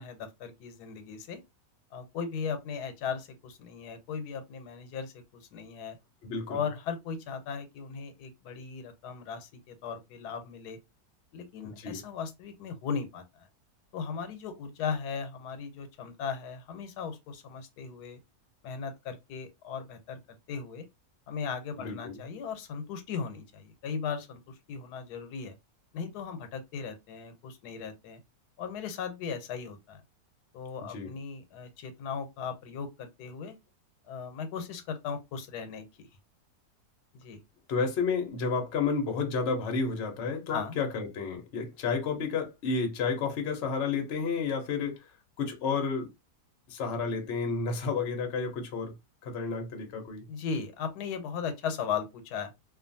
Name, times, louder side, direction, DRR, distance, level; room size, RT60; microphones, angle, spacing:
voice 1, 0.0-1.4 1.9-6.0 6.5-10.8 11.3-13.5 13.9-18.2 18.6-20.9 21.3-25.5 25.9-28.2 28.6-30.0 30.5-33.6 34.1-36.1 37.1-37.4 40.5-40.7 50.3-52.5, left 6 dB, 85° left, 1.2 m, -37 dB
voice 2, 6.2-6.6 11.6-12.0 21.8-22.2 30.9-31.1 37.7-45.0 45.4-46.1 46.7-48.9 49.2-50.2, left 5 dB, 55° left, 0.9 m, -31 dB
2.5 x 2.4 x 2.6 m
omnidirectional pair, 1.7 m